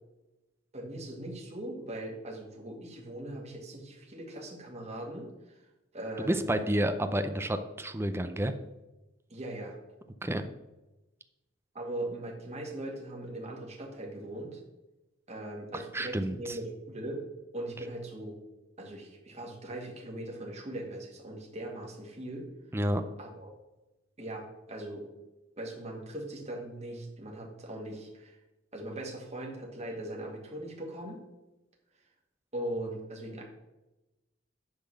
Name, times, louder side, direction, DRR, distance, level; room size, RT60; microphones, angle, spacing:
voice 1, 0.7-5.6 5.9-6.7 9.3-9.8 11.7-14.6 15.3-17.2 17.5-18.4 18.8-22.5 23.2-23.5 24.2-25.1 25.6-28.4 28.7-31.2 32.5-33.4, right 1 dB, 35° right, -1 dB, 2.0 m, -40 dB
voice 2, 6.2-8.5 10.2-10.4 15.9-16.6 22.7-23.0, right 1 dB, 10° right, 9 dB, 0.5 m, -30 dB
10.5 x 4.0 x 6.4 m, 1.0 s
head